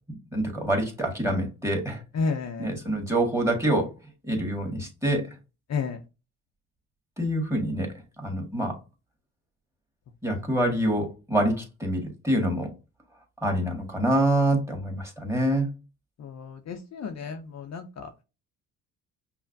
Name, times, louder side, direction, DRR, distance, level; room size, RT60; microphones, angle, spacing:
voice 1, 0.3-2.0 2.6-3.9 4.2-5.3 7.2-8.8 10.2-12.7 13.4-15.7, right 1 dB, 5° right, 1.7 m, -26 dB
voice 2, 2.2-2.7 5.7-6.0 16.2-17.9, left 5 dB, 45° left, 0.6 m, -31 dB
5.6 x 2.2 x 2.6 m
supercardioid pair, 60°, 38 cm